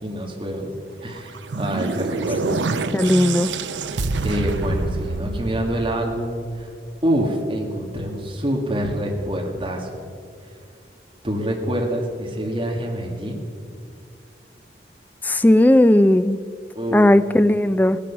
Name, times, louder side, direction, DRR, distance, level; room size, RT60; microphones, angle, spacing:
voice 1, 0.0-0.7 1.0-2.6 3.9-6.7 7.0-10.0 11.2-13.4 16.8-17.1, equal, 30° right, 0 dB, 1.9 m, -26 dB
sound 1, 1.1-6.5, right 3 dB, 85° right, 0.6 m, -27 dB
voice 2, 2.9-3.5 15.2-16.4 16.9-18.0, left 1 dB, 10° left, 13 dB, 0.3 m, -16 dB
16.5 x 10.5 x 6.0 m, 2.2 s
head